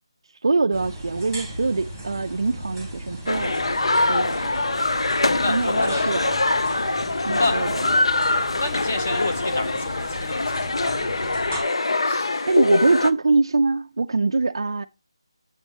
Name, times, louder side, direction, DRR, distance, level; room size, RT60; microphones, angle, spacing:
voice 1, 0.4-3.6 4.1-4.6 5.5-6.4 7.3-7.8 12.5-14.9, right 3 dB, 60° right, 0.4 m, -23 dB
sound 1, 0.7-11.6, right 1 dB, 5° left, 1.5 m, -37 dB
sound 2, 3.3-13.1, left 2 dB, 70° left, 0.6 m, -23 dB
voice 2, 5.4-6.0 7.3-7.6 8.6-11.1 12.0-12.5, left 3 dB, 25° left, 0.9 m, -29 dB
7.8 x 4.1 x 5.3 m
figure-of-eight pair, 180°, 3 cm